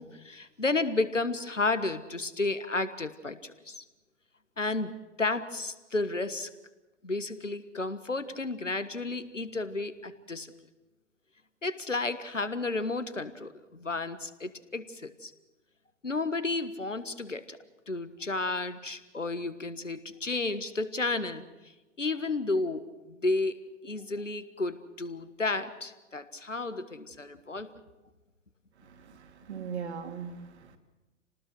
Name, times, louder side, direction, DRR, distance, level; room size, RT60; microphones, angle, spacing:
voice 1, 0.0-3.8 4.6-6.5 7.0-10.5 11.6-15.3 16.0-17.6 17.9-21.5 22.0-27.7, left 3 dB, 85° left, 12 dB, 1.6 m, -32 dB
voice 2, 28.8-30.8, right 6 dB, 65° right, 5 dB, 2.9 m, -40 dB
29.0 x 19.0 x 6.4 m, 1.1 s
figure-of-eight pair, 100°, 36 cm